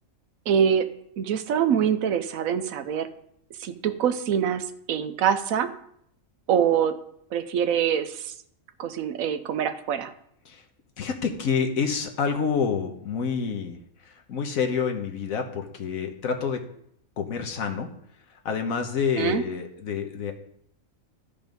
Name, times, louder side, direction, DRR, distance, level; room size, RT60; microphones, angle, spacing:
voice 1, 0.5-0.9 1.2-3.1 3.6-5.7 6.5-7.0 7.3-8.3 8.8-10.1 19.2-19.4, right 8 dB, 80° right, 11 dB, 1.1 m, -24 dB
voice 2, 11.0-13.8 14.3-16.6 17.2-17.9 18.4-20.3, left 6 dB, 80° left, 4 dB, 1.4 m, -28 dB
12.5 x 5.3 x 5.2 m, 0.71 s
omnidirectional pair, 1.4 m